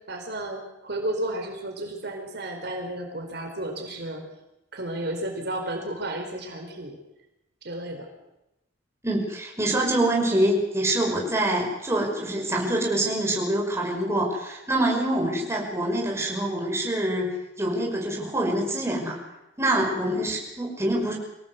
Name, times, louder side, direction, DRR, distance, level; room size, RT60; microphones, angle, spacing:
voice 1, 0.1-4.2 4.7-7.0 7.6-8.1, right 1 dB, 60° right, 3 dB, 4.2 m, -32 dB
voice 2, 9.0-19.2 19.6-21.1, right 1 dB, 15° right, -1 dB, 5.7 m, -25 dB
25.0 x 17.5 x 8.1 m, 0.94 s
head